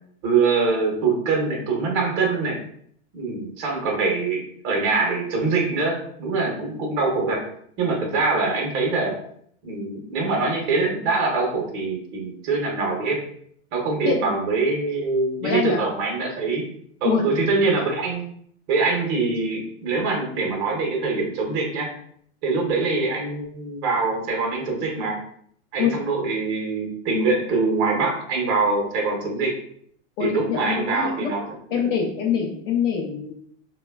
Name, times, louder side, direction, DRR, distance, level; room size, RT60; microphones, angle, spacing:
voice 1, 0.2-2.6 3.1-7.4 7.8-9.2 9.6-13.2 13.7-16.6 17.0-18.2 18.7-21.9 22.4-25.2 25.7-29.6 30.2-31.9, right 3 dB, 35° right, 0 dB, 0.7 m, -24 dB
voice 2, 15.4-15.8 17.0-17.2 25.8-25.9 30.2-31.3 31.7-33.3, left 7 dB, 50° left, -1 dB, 0.5 m, -24 dB
3.0 x 2.1 x 2.2 m, 0.64 s
supercardioid pair, 145°, 36 cm